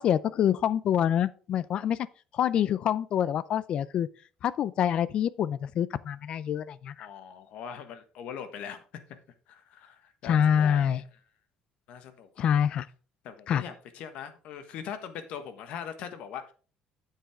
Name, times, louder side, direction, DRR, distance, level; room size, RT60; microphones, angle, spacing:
voice 1, 0.0-2.0 2.3-4.1 4.4-7.1 10.3-11.0 12.4-12.9 13.5-13.6, left 9 dB, 45° left, 0.4 m, -26 dB
voice 2, 7.0-8.8 9.5-11.0 11.9-12.5 13.2-16.5, left 8 dB, 65° left, 1.3 m, -41 dB
9.0 x 7.3 x 3.6 m
cardioid pair, 160°, 2 cm